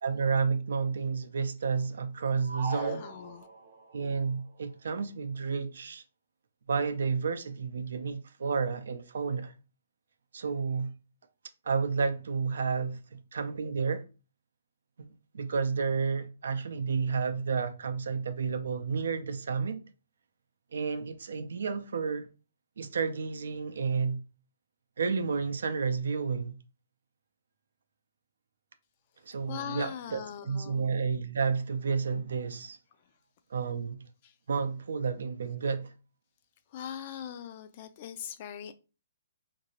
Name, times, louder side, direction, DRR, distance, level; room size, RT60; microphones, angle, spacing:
voice 1, 0.0-3.1 3.9-6.0 6.7-9.5 10.3-10.9 11.7-13.0 13.3-14.0 15.0-15.1 15.3-19.8 20.7-22.3 22.8-24.2 25.0-26.6 29.3-32.8 33.5-34.0 34.5-35.9, right 5 dB, 70° right, 0.4 m, -31 dB
sound 1, 2.4-3.9, right 4 dB, 55° right, 0.9 m, -38 dB
voice 2, 2.6-3.5 29.5-30.9 34.2-34.3 36.7-38.7, left 9 dB, 40° left, 0.4 m, -41 dB
2.9 x 2.6 x 2.8 m
hypercardioid pair, 130°, 0 cm